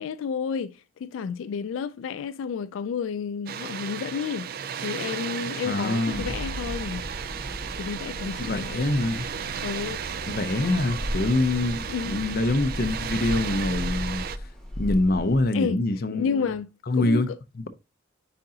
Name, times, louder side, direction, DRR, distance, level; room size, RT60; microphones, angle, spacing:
voice 1, 0.0-4.5 4.8-7.0 7.8-8.7 9.6-10.0 11.9-12.2 15.5-17.4, left 6 dB, 90° left, 0.3 m, -31 dB
Water, 3.5-14.4, right 8 dB, 50° right, 0.4 m, -35 dB
voice 2, 5.7-6.3 8.4-9.3 10.3-14.3 14.8-16.5 16.9-17.3, left 2 dB, 50° left, 0.6 m, -25 dB
sound 1, 6.1-15.4, equal, 5° left, 1.4 m, -36 dB
9.8 x 3.8 x 2.8 m
head